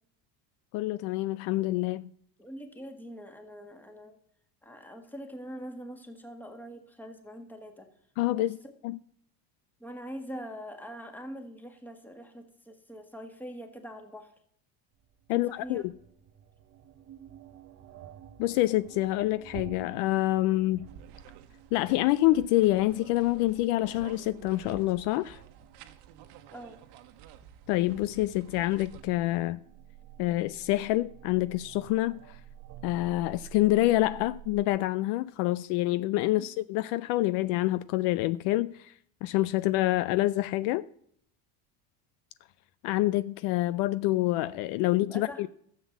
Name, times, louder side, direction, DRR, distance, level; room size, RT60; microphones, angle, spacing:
voice 1, 0.7-2.1 8.2-8.6 8.8-9.0 15.3-15.9 18.4-20.9 21.7-25.4 27.7-29.6 30.2-32.4 32.8-38.9 39.2-40.9 42.8-45.5, left 17 dB, 60° left, 0.5 m, -27 dB
voice 2, 2.4-4.2 4.6-7.9 8.3-8.5 9.8-14.3 15.3-15.8 26.5-26.8 36.4-36.5 45.1-45.5, equal, 5° left, 1.7 m, -43 dB
sound 1, 14.9-34.7, right 10 dB, 35° right, 0.7 m, -51 dB
sound 2, 20.9-29.0, right 10 dB, 60° right, 1.3 m, -50 dB
13.0 x 7.5 x 7.3 m
cardioid pair, 140°, 46 cm